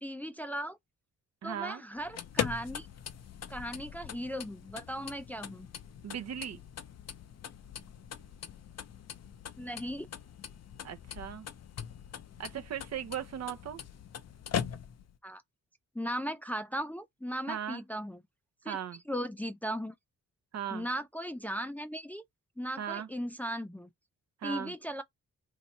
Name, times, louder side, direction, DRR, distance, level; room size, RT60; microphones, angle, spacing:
voice 1, 0.0-0.8 1.4-2.9 3.5-5.7 9.6-10.1 15.2-15.4 15.9-18.2 18.6-18.8 19.1-19.9 20.7-22.2 22.6-23.9 24.4-25.0, equal, 5° left, 0.5 m, -37 dB
voice 2, 1.4-1.8 6.0-6.6 10.8-11.5 12.4-13.8 17.5-17.8 18.7-19.0 20.5-20.9 22.8-23.1 24.4-24.7, right 9 dB, 55° right, 0.7 m, -37 dB
sound 1, 2.0-15.2, left 9 dB, 55° left, 0.6 m, -41 dB
2.8 x 2.7 x 4.2 m
cardioid pair, 70°, 31 cm